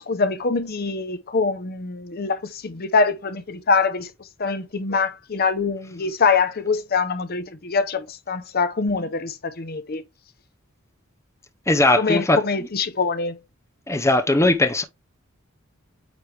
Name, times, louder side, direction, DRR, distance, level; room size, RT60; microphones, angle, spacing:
voice 1, 0.0-4.1 4.4-10.0 12.0-13.4, left 4 dB, 50° left, 0.7 m, -24 dB
voice 2, 11.7-12.4 13.9-14.8, left 2 dB, 15° left, 0.6 m, -18 dB
8.9 x 3.4 x 3.2 m
head